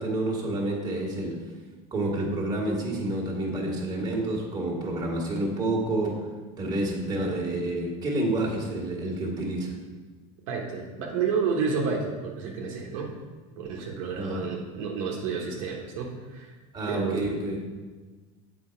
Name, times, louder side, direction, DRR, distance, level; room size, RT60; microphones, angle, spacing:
voice 1, 0.0-1.4 1.9-6.2 6.6-9.8 14.1-14.5 16.7-17.6, right 1 dB, 25° right, -3 dB, 1.9 m, -29 dB
voice 2, 10.5-13.1 13.6-16.5 16.9-17.2, right 5 dB, 80° right, -1 dB, 1.3 m, -30 dB
7.5 x 4.7 x 4.5 m, 1.3 s
supercardioid pair, 120°, 17 cm